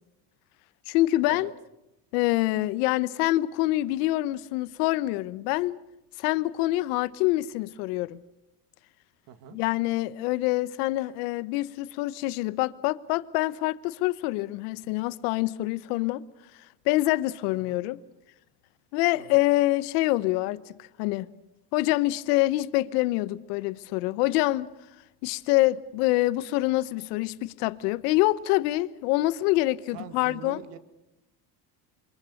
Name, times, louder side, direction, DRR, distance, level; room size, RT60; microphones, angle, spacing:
voice 1, 0.9-1.5 2.1-5.8 6.2-8.2 9.5-16.2 16.8-18.0 18.9-21.3 21.7-24.7 25.2-30.6, left 18 dB, 85° left, 1.1 m, -26 dB
voice 2, 9.3-9.6 17.5-17.8 19.2-19.4 29.9-30.8, right 9 dB, 70° right, 2.3 m, -44 dB
27.0 x 24.0 x 6.5 m
supercardioid pair, 95°, 45 cm